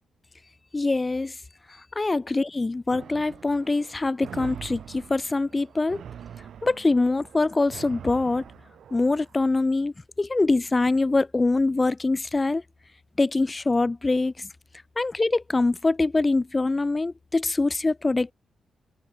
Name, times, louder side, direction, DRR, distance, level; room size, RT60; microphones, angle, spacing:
voice 1, 0.7-1.3 2.0-6.0 6.6-8.4 8.9-12.6 13.2-14.5 15.0-18.3, left 3 dB, 20° left, 0.3 m, -24 dB
sound 1, 2.9-9.3, right 9 dB, 75° right, 3.1 m, -43 dB
cardioid pair, 115°, 0 cm